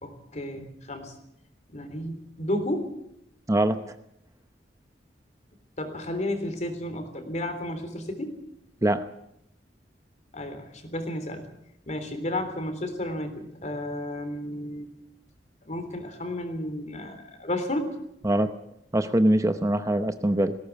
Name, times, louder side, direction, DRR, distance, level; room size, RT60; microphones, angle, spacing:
voice 1, 0.0-1.1 1.7-2.9 5.8-8.4 10.3-11.5 11.9-14.9 15.7-17.9, left 1 dB, 40° left, 8 dB, 3.6 m, -32 dB
voice 2, 3.5-3.8 8.8-9.1 18.2-18.5 18.9-20.6, right 1 dB, 20° right, 9 dB, 0.8 m, -23 dB
19.5 x 17.0 x 8.4 m, 0.78 s
head